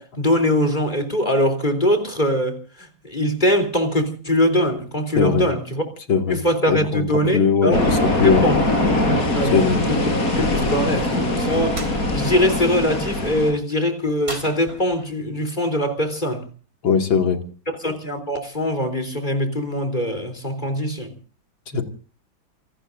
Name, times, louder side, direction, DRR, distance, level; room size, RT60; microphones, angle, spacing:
voice 1, 0.0-5.8 6.3-8.0 8.4-8.6 9.3-10.1 10.4-16.5 17.8-21.1, equal, 20° left, 3.6 m, -22 dB
voice 2, 6.7-7.0 7.3-7.9 8.2-8.4 9.5-9.8 16.8-17.4 21.7-21.8, left 6 dB, 80° left, 3.1 m, -19 dB
sound 1, 7.7-13.5, left 1 dB, 45° left, 5.1 m, -21 dB
sound 2, 11.7-12.0 14.2-15.2, right 2 dB, 30° right, 4.2 m, -34 dB
28.0 x 19.0 x 2.6 m
omnidirectional pair, 2.1 m